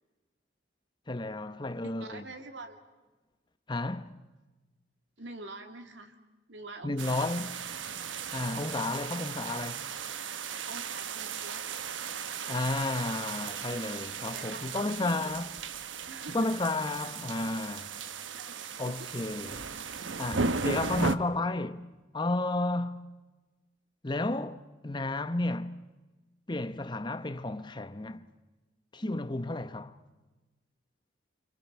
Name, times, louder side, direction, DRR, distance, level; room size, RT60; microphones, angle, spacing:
voice 1, 1.1-2.2 3.7-4.1 6.8-7.6 8.3-9.9 12.5-15.5 16.3-18.0 18.8-19.7 20.2-21.9 22.1-23.1 24.0-25.8 26.5-28.3 28.9-29.9, left 2 dB, 25° left, 0.9 m, -32 dB
voice 2, 2.0-2.8 5.2-6.1 6.5-7.2 10.6-11.6 14.3-15.3 16.0-16.5 17.0-17.1 18.3-19.1, right 3 dB, 70° right, 2.5 m, -46 dB
sound 1, 7.0-21.2, right 5 dB, 90° right, 1.0 m, -36 dB
29.5 x 27.0 x 5.6 m
head